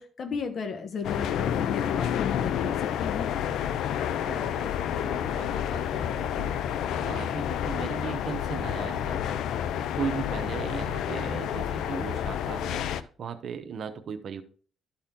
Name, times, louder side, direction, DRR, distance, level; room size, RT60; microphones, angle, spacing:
voice 1, 0.0-3.4, left 6 dB, 55° left, 6 dB, 1.2 m, -34 dB
sound 1, 1.0-13.0, left 9 dB, 80° left, 0.5 m, -29 dB
voice 2, 4.3-9.4 9.9-14.4, right 6 dB, 60° right, 7 dB, 0.9 m, -37 dB
12.5 x 4.3 x 3.7 m, 0.42 s
cardioid pair, 90°, 0 cm